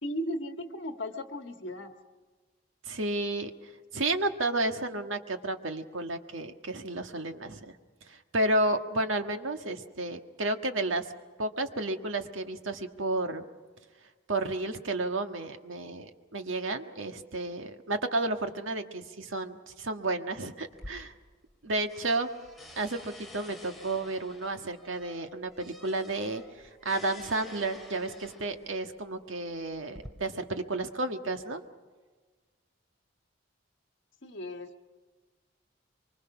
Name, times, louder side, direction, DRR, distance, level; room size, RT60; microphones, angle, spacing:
voice 1, 0.0-1.9 34.2-34.9, equal, 65° left, 6 dB, 1.7 m, -36 dB
voice 2, 2.8-3.5 3.9-7.7 8.1-11.1 11.4-13.4 14.3-21.1 21.6-22.3 22.8-26.4 26.8-31.6, right 2 dB, 80° right, 6 dB, 1.6 m, -32 dB
sound 1, 20.7-21.6 21.9-28.7 29.5-30.1, left 1 dB, ahead, 2.3 m, -49 dB
24.5 x 24.5 x 6.0 m, 1.4 s
head